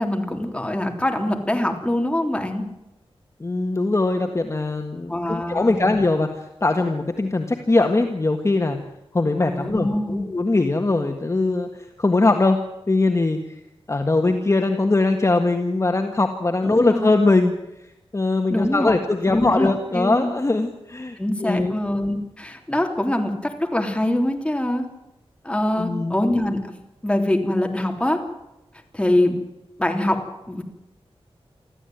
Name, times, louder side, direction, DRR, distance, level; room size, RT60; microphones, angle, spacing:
voice 1, 0.0-2.7 5.1-5.9 9.4-10.3 16.6-17.1 18.5-18.9 19.3-20.3 21.2-24.9 25.4-26.8 27.0-28.2 28.9-29.4 29.8-30.6, left 1 dB, 10° left, 3 dB, 3.4 m, -24 dB
voice 2, 3.4-8.8 9.1-11.7 12.0-12.6 12.9-13.4 13.9-17.5 18.1-21.8 25.8-26.1, left 2 dB, 30° left, 4 dB, 1.6 m, -21 dB
25.5 x 15.0 x 9.2 m, 0.92 s
wide cardioid pair, 125°, 10 cm